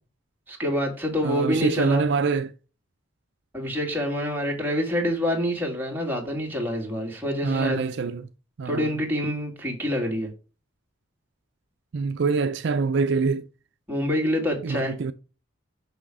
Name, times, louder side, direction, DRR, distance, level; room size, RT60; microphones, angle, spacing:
voice 1, 0.5-2.0 3.5-7.8 8.7-10.3 13.9-14.9, equal, 10° right, 1.9 m, -26 dB
voice 2, 1.2-2.5 7.4-8.3 8.6-9.0 11.9-13.5 14.6-15.1, right 4 dB, 60° right, 0.4 m, -25 dB
6.1 x 5.6 x 4.8 m
head